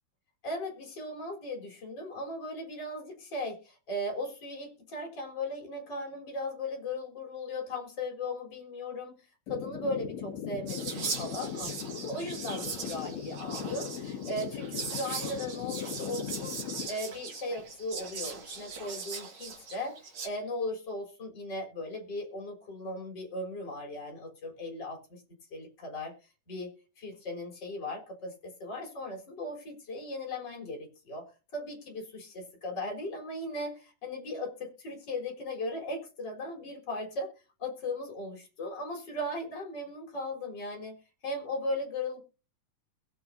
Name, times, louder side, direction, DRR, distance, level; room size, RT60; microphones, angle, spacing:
voice 1, 0.4-25.2 25.5-26.1 26.5-31.3 31.5-37.3 37.6-40.9 41.2-42.2, left 1 dB, 30° left, 1 dB, 4.3 m, -37 dB
sound 1, 9.5-16.9, left 8 dB, 65° left, 2.2 m, -39 dB
Whispering, 10.7-20.3, right 5 dB, 40° right, 2.1 m, -40 dB
21.5 x 7.5 x 2.6 m, 0.30 s
omnidirectional pair, 3.7 m